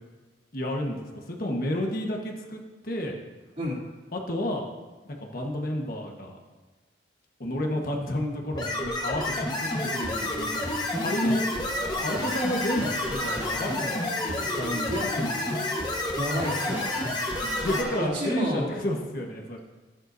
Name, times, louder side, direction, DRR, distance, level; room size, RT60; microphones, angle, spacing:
voice 1, 0.5-3.1 4.1-4.6 5.0-6.4 7.4-11.4 12.0-14.0 14.3-15.4 17.4-19.6, equal, 55° left, 1 dB, 1.4 m, -31 dB
sound 1, 8.5-17.8, left 1 dB, 25° left, 1.4 m, -30 dB
sound 2, 9.7-18.9, equal, 10° right, 1.1 m, -38 dB
voice 2, 14.4-15.1 16.1-16.9 17.7-18.7, left 1 dB, 40° right, -5 dB, 3.0 m, -31 dB
14.5 x 11.0 x 2.7 m, 1.3 s
head